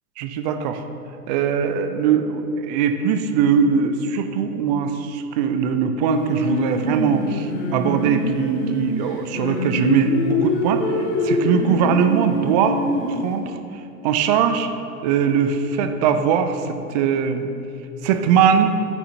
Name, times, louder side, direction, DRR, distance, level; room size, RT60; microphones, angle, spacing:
voice 1, 0.2-0.8 1.3-12.8 13.1-13.5 14.0-14.7 15.0-17.5 18.0-18.8, right 7 dB, 30° right, 8 dB, 0.5 m, -21 dB
Singing, 6.1-13.4, left 1 dB, 25° left, 1.8 m, -24 dB
11.5 x 8.4 x 2.8 m, 2.6 s
figure-of-eight pair, 100°, 46 cm